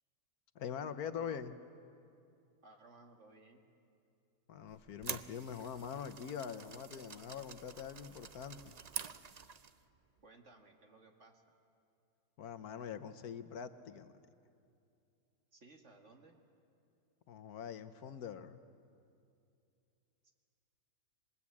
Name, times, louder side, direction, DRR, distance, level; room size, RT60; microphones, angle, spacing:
voice 1, 0.5-1.5 4.5-8.8 12.4-14.1 17.3-18.6, left 7 dB, 70° left, 11 dB, 1.4 m, -44 dB
voice 2, 1.2-1.6 2.6-3.6 10.2-11.4 15.5-16.4 20.2-20.3, right 2 dB, 45° right, 3 dB, 2.3 m, -60 dB
sound 1, 4.7-9.8, right 6 dB, 65° right, 0.4 m, -47 dB
27.0 x 20.5 x 8.5 m, 2.5 s
omnidirectional pair, 1.7 m